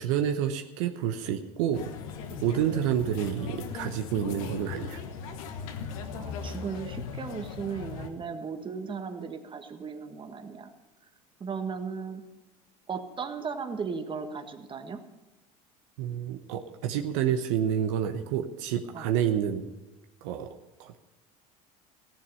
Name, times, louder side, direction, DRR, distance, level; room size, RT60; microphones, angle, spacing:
voice 1, 0.0-1.9 2.4-5.0 16.0-19.6 20.2-20.5 20.8-21.0, right 9 dB, 75° right, 6 dB, 1.0 m, -29 dB
sound 1, 1.7-8.1, left 6 dB, 80° left, 1.3 m, -38 dB
voice 2, 6.1-10.7 11.4-12.2 12.9-15.0 18.9-19.1, right 5 dB, 30° right, 6 dB, 1.5 m, -36 dB
15.0 x 10.5 x 5.6 m, 1.1 s
hypercardioid pair, 85°, 17 cm